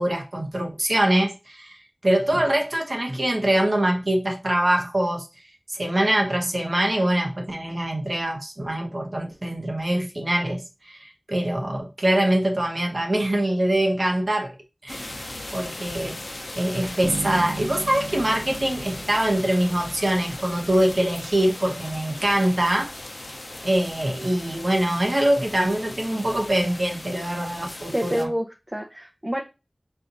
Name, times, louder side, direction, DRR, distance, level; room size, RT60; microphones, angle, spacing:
voice 1, 0.0-1.8 2.0-5.3 5.7-14.5 14.8-15.2 15.5-16.2 16.6-22.9 23.6-28.3, right 1 dB, 60° right, 1.0 m, -23 dB
sound 1, 14.9-28.3, left 1 dB, 60° left, 0.6 m, -38 dB
Bass guitar, 17.0-20.1, right 3 dB, 85° right, 0.7 m, -36 dB
voice 2, 27.9-29.4, equal, 30° right, 0.7 m, -27 dB
4.4 x 2.5 x 3.9 m
wide cardioid pair, 45°, 0 cm